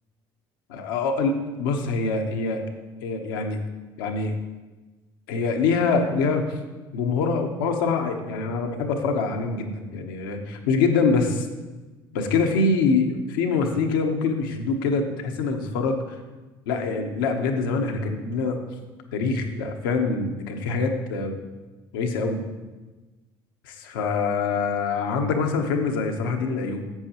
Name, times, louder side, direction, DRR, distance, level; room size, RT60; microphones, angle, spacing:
voice 1, 0.7-2.6 3.0-3.6 4.0-4.3 5.3-6.6 6.9-11.5 12.1-16.2 16.7-18.6 19.1-21.3 21.9-22.4 23.7-26.8, left 4 dB, 85° left, 3 dB, 1.0 m, -24 dB
10.5 x 7.9 x 3.0 m, 1.2 s
supercardioid pair, 75°, 11 cm